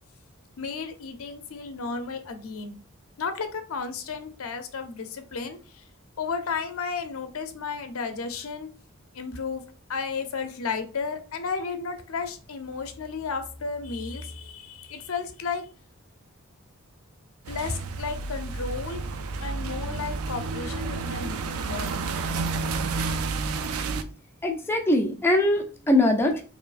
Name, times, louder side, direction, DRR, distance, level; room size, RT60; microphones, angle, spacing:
voice 1, 0.6-2.7 3.2-5.8 6.2-8.7 9.1-9.6 9.9-15.7 17.5-19.0 19.4-21.4 21.7-22.1, left 5 dB, 80° left, 8 dB, 0.6 m, -33 dB
sound 1, 17.4-24.0, right 4 dB, 85° right, 0.4 m, -30 dB
voice 2, 24.4-26.4, left 1 dB, 10° left, 3 dB, 0.4 m, -22 dB
4.5 x 2.8 x 2.5 m, 0.37 s
head